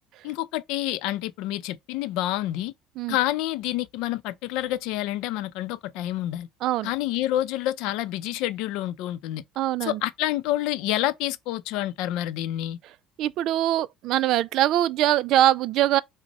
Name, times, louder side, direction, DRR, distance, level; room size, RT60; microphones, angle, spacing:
voice 1, 0.2-2.7 3.1-6.5 6.8-9.4 9.8-12.8, left 14 dB, 75° left, 0.5 m, -28 dB
voice 2, 9.6-10.0 13.2-16.0, right 13 dB, 60° right, 0.3 m, -22 dB
6.0 x 2.1 x 4.1 m
cardioid pair, 140°, 0 cm